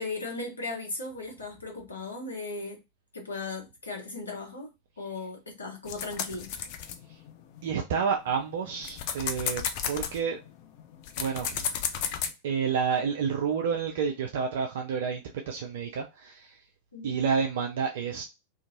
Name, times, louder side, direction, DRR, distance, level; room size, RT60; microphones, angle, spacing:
voice 1, 0.0-2.8 3.1-4.7 5.0-6.5 16.9-17.2, left 3 dB, 75° left, 1.0 m, -37 dB
sound 1, 5.9-7.7 8.2-12.3, left 8 dB, 45° left, 0.4 m, -33 dB
voice 2, 7.6-10.4 11.2-11.7 12.4-16.6 17.0-18.2, right 6 dB, 55° right, 0.4 m, -29 dB
2.7 x 2.5 x 2.6 m
figure-of-eight pair, 90°, 0 cm